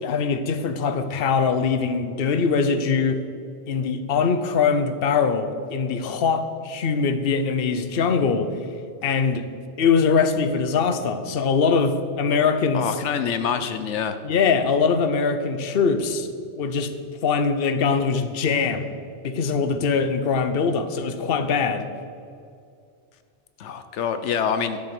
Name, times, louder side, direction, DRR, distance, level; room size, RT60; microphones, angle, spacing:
voice 1, 0.0-3.2 3.7-8.5 9.0-9.5 9.8-12.9 14.2-16.3 16.6-16.9 17.2-18.9 19.2-21.9, left 5 dB, 60° left, 9 dB, 1.0 m, -22 dB
voice 2, 12.7-14.2 23.6-24.8, left 7 dB, 85° left, 10 dB, 1.0 m, -26 dB
12.0 x 7.7 x 6.0 m, 2.4 s
omnidirectional pair, 1.2 m